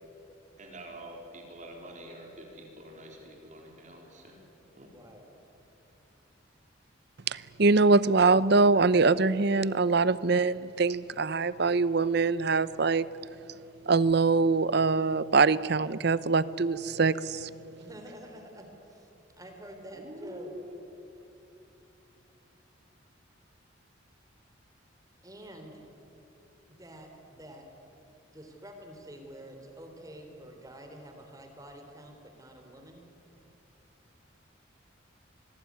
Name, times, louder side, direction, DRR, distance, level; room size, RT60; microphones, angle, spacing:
voice 1, 0.6-4.4 4.8-4.9 19.9-20.8, equal, 40° right, 1 dB, 3.9 m, -46 dB
voice 2, 4.9-5.2 17.8-19.1 19.4-20.5 25.2-25.9 26.7-27.7 28.1-33.0, right 1 dB, 20° right, 4 dB, 3.3 m, -48 dB
voice 3, 7.3-13.0 13.9-17.5, right 4 dB, 55° right, 17 dB, 0.7 m, -23 dB
26.5 x 20.0 x 9.5 m, 2.8 s
head